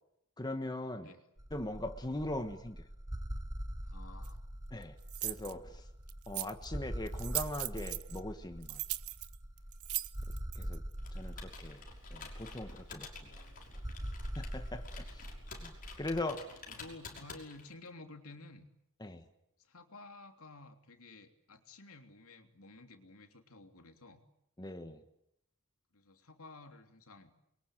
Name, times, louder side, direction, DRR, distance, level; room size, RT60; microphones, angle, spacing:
voice 1, 0.4-1.1 1.5-2.8 4.7-5.0 5.2-5.8 6.3-8.8 10.5-10.8 11.1-11.8 12.1-13.4 14.3-15.3 15.6-15.7 16.0-16.5 19.0-19.2 24.6-25.0, left 1 dB, 20° left, 7 dB, 1.4 m, -40 dB
sound 1, 1.4-16.2, equal, 15° right, 1.4 m, -44 dB
voice 2, 3.8-4.4 11.5-11.6 16.7-18.7 19.6-24.2 25.9-27.3, left 2 dB, 70° left, 6 dB, 3.2 m, -53 dB
sound 2, 4.2-4.3 5.1-5.5 6.1-6.6 7.1-8.2 8.6-10.8, right 17 dB, 75° right, 1.1 m, -38 dB
Computer keyboard, 11.0-17.9, left 4 dB, 40° left, 5.9 m, -51 dB
28.5 x 23.0 x 9.1 m, 0.80 s
head